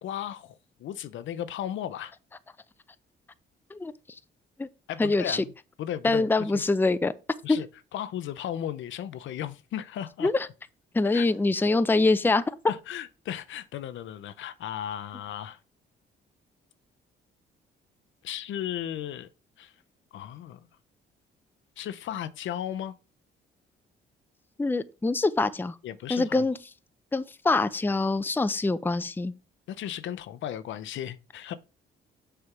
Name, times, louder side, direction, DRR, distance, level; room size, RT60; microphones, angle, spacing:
voice 1, 0.0-2.1 4.9-5.5 5.8-6.6 7.4-10.3 11.1-11.3 12.7-15.6 18.2-19.3 19.6-19.7 20.1-20.7 21.8-22.9 25.8-26.5 29.7-31.5, left 10 dB, 75° left, 0.7 m, -35 dB
voice 2, 5.0-5.4 6.0-7.1 7.5-7.6 10.2-10.5 10.9-12.4 24.6-25.8 26.1-26.6 27.1-29.3, left 3 dB, 10° left, 0.5 m, -24 dB
6.7 x 3.4 x 5.9 m
cardioid pair, 90°, 20 cm